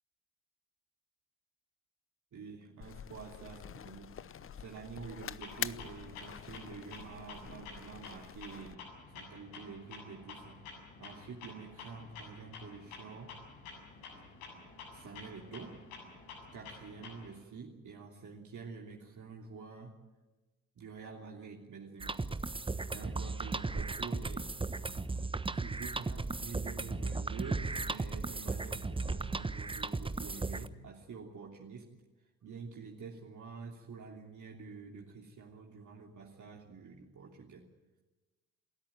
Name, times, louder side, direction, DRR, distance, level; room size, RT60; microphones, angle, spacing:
voice 1, 2.3-8.8 9.1-10.6 11.0-13.3 14.9-15.8 16.5-20.0 20.8-22.2 22.8-24.5 25.5-31.9 32.4-37.7, right 5 dB, 45° right, 0 dB, 3.1 m, -48 dB
sound 1, 2.8-8.8, left 9 dB, 30° left, 0.8 m, -45 dB
Clock, 5.4-17.4, left 4 dB, 75° left, 7.7 m, -50 dB
sound 2, 22.0-30.7, right 3 dB, 15° right, 1.1 m, -36 dB
29.5 x 13.5 x 9.0 m, 1.2 s
hypercardioid pair, 55°, 41 cm